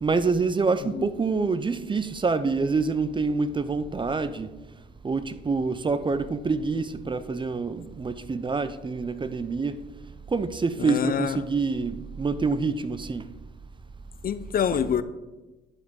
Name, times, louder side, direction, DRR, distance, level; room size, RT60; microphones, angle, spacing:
voice 1, 0.0-4.5 5.0-9.8 10.3-13.2, right 4 dB, 25° right, 0.5 m, -26 dB
voice 2, 10.8-11.4 14.2-15.0, left 8 dB, 45° left, 0.5 m, -26 dB
9.7 x 7.5 x 3.7 m
cardioid pair, 90°, 20 cm